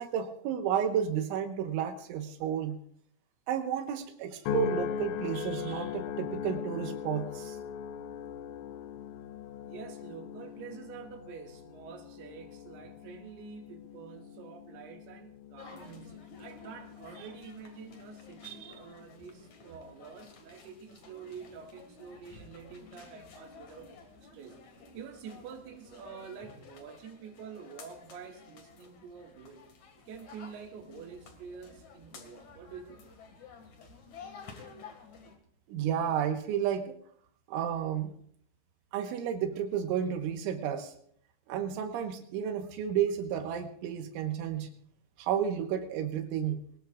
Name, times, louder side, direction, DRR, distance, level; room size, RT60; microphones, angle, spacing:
voice 1, 0.0-2.8 3.5-7.6 17.2-17.3 18.4-18.7 35.7-36.9 37.5-38.1 38.9-40.9 41.5-44.7 45.2-46.7, right 8 dB, 85° right, 5 dB, 3.6 m, -32 dB
sound 1, 4.5-18.9 19.5-19.9, left 7 dB, 85° left, 3.3 m, -40 dB
voice 2, 9.6-24.6 24.9-29.7 30.1-33.0, right 6 dB, 65° right, 2 dB, 3.6 m, -47 dB
sound 2, 15.6-35.4, left 4 dB, 50° left, 2.6 m, -52 dB
21.5 x 19.5 x 2.5 m, 0.62 s
omnidirectional pair, 5.4 m